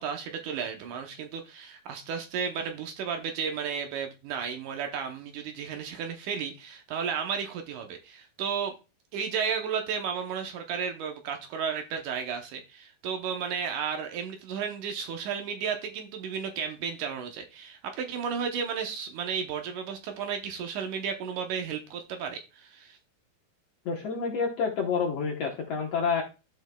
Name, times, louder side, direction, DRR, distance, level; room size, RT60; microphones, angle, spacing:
voice 1, 0.0-8.7 9.1-23.0, right 6 dB, 75° right, 2.0 m, -33 dB
voice 2, 23.8-26.2, left 5 dB, 70° left, 1.5 m, -28 dB
14.0 x 5.1 x 2.2 m
omnidirectional pair, 4.3 m